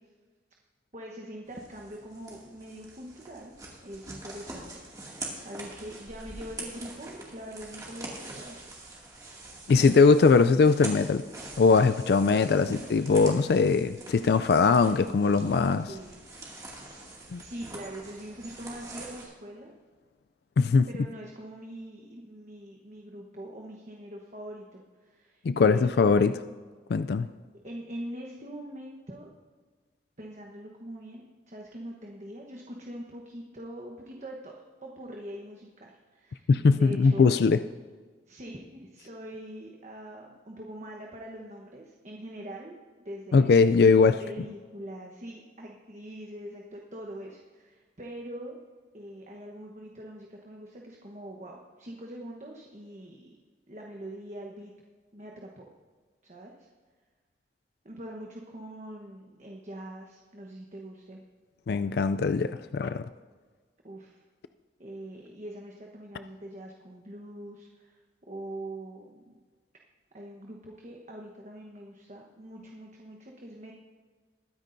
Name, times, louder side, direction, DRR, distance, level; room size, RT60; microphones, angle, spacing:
voice 1, 0.9-3.5 3.8-8.6 15.8-16.2 17.3-19.7 20.9-26.2 27.6-29.3 30.2-37.4 38.3-42.8 43.0-43.5 44.2-48.6 48.9-53.3 53.7-54.7 55.1-55.7 56.2-56.5 57.8-61.2 63.8-64.2 64.8-68.0 68.3-69.3 70.1-73.7, right 1 dB, 40° right, 0 dB, 1.1 m, -43 dB
sound 1, 1.5-19.2, right 2 dB, 20° right, 2.3 m, -44 dB
voice 2, 9.7-11.2 11.6-15.9 17.3-17.4 20.6-20.9 25.4-26.4 26.9-27.3 36.5-37.6 43.3-44.2 61.7-63.1, left 4 dB, 60° left, 11 dB, 0.3 m, -21 dB
21.5 x 9.9 x 2.7 m, 1.5 s
head